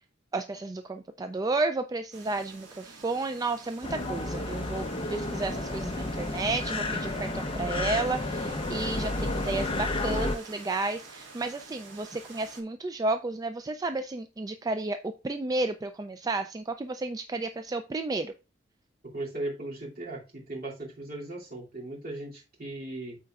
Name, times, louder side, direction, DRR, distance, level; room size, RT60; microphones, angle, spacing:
voice 1, 0.3-18.3, right 3 dB, 20° right, 8 dB, 0.3 m, -32 dB
sound 1, 2.1-12.6, right 4 dB, 80° right, 1.8 m, -49 dB
sound 2, 3.8-10.4, left 2 dB, 30° left, 0.7 m, -31 dB
voice 2, 19.1-23.2, right 2 dB, 50° right, -4 dB, 2.6 m, -37 dB
13.0 x 4.4 x 2.4 m, 0.30 s
head